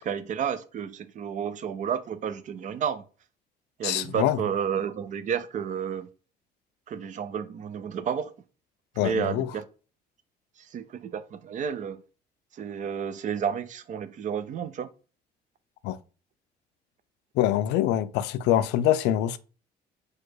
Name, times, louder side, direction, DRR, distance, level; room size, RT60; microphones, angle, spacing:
voice 1, 0.0-3.0 3.8-6.1 6.9-8.3 9.0-9.6 10.6-12.0 12.5-14.9, right 7 dB, 50° right, 0.5 m, -31 dB
voice 2, 3.8-4.4 9.0-9.5 15.8-16.0 17.4-19.4, left 12 dB, 85° left, 0.4 m, -24 dB
4.6 x 2.3 x 4.6 m
cardioid pair, 110°, 17 cm